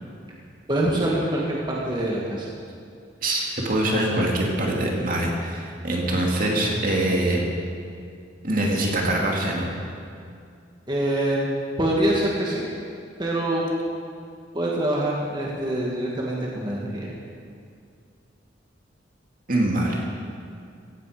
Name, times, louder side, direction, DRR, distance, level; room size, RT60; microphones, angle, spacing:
voice 1, 0.7-2.5 10.9-11.5 11.8-12.7 13.2-13.7 14.5-17.1, right 1 dB, 25° right, -4 dB, 2.0 m, -25 dB
voice 2, 3.2-7.4 8.4-9.6 19.5-20.0, right 1 dB, 50° right, -1 dB, 2.6 m, -23 dB
16.5 x 16.0 x 5.1 m, 2.4 s
head